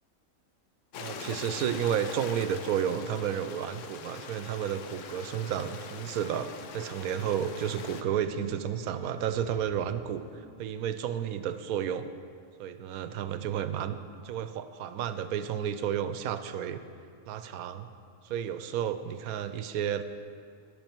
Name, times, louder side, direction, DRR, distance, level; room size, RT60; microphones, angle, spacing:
Stream, 0.9-8.0, left 6 dB, 65° left, 0.9 m, -43 dB
voice 1, 1.0-10.2 10.6-12.1 12.6-14.0 14.2-16.8 17.3-17.9 18.2-20.0, right 9 dB, 80° right, 11 dB, 1.0 m, -32 dB
sound 1, 3.9-10.4, left 4 dB, 45° left, 3.3 m, -54 dB
11.0 x 10.5 x 4.5 m, 2.3 s
omnidirectional pair, 1.6 m